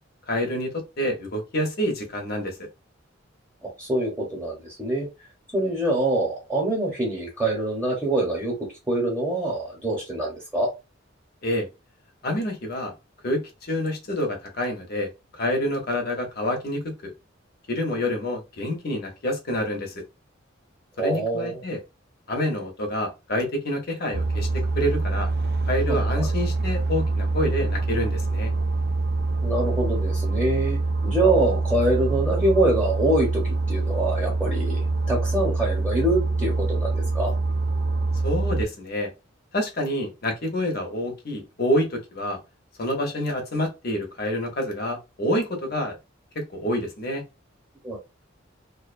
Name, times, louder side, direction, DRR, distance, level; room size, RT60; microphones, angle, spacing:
voice 1, 0.3-2.7 11.4-11.7 12.2-12.9 13.2-17.1 17.7-19.9 21.0-21.8 22.3-24.5 24.8-25.3 25.7-28.5 38.2-39.1 39.5-42.4 42.8-46.0 46.3-47.2, left 1 dB, 50° left, 0.8 m, -27 dB
voice 2, 3.6-5.1 5.5-8.6 8.9-10.7 21.0-21.6 25.9-26.3 29.4-30.8 31.0-37.3 47.8-48.0, right 1 dB, 10° right, 0.8 m, -25 dB
sound 1, 24.1-38.7, right 3 dB, 55° right, 0.5 m, -25 dB
2.4 x 2.2 x 2.4 m
head